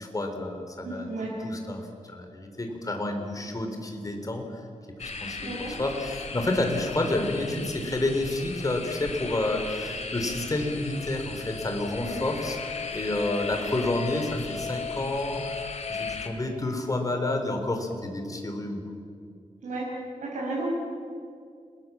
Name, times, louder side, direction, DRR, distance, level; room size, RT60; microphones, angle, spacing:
voice 1, 0.0-4.6 5.0-12.6 12.9-15.5 15.9-18.8, left 2 dB, 30° left, 4 dB, 3.9 m, -30 dB
voice 2, 0.8-1.3 5.4-5.7 12.0-12.3 19.6-19.9 20.2-20.7, right 2 dB, 85° right, -6 dB, 6.4 m, -33 dB
sound 1, 5.0-16.3, left 4 dB, 65° left, 2.8 m, -38 dB
Musical instrument, 10.5-16.1, left 6 dB, 45° left, 2.3 m, -39 dB
29.5 x 21.5 x 7.5 m, 2.3 s
wide cardioid pair, 120°, 13 cm